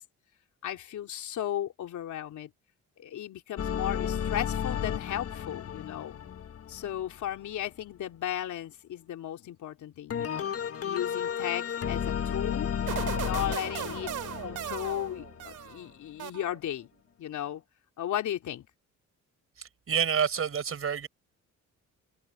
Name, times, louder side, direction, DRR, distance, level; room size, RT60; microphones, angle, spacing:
voice 1, 0.6-2.5 3.0-6.2 6.7-10.5 10.8-12.7 13.2-14.1 14.4-16.9 17.2-17.6 18.0-18.7, left 11 dB, 75° left, 3.4 m, -35 dB
sound 1, 3.6-7.7 10.1-15.7, left 8 dB, 50° left, 1.6 m, -33 dB
sound 2, 12.9-15.8 16.2-16.8, right 13 dB, 85° right, 3.2 m, -37 dB
voice 2, 19.6-21.1, right 7 dB, 45° right, 5.6 m, -28 dB
cardioid pair, 90°, 30 cm